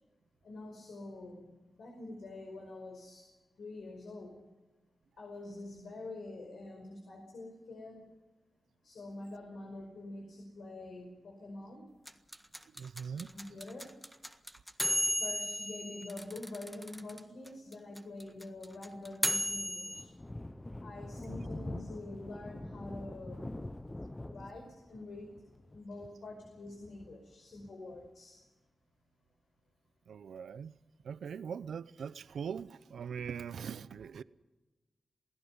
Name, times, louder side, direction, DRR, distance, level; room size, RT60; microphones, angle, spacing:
voice 1, 0.4-4.4 5.2-8.1 8.8-11.9 13.1-13.9 15.2-20.2 20.8-23.5 24.2-28.5, left 2 dB, 80° left, 5.2 m, -46 dB
sound 1, 12.1-17.2 17.5-17.6 17.7-20.0, equal, ahead, 1.6 m, -34 dB
voice 2, 12.7-13.3 15.0-15.2 30.1-30.7 31.0-34.2, right 7 dB, 90° right, 0.7 m, -41 dB
Thunder, 18.9-28.1, left 1 dB, 20° left, 0.9 m, -45 dB
28.0 x 17.5 x 5.6 m
cardioid pair, 80°, 0 cm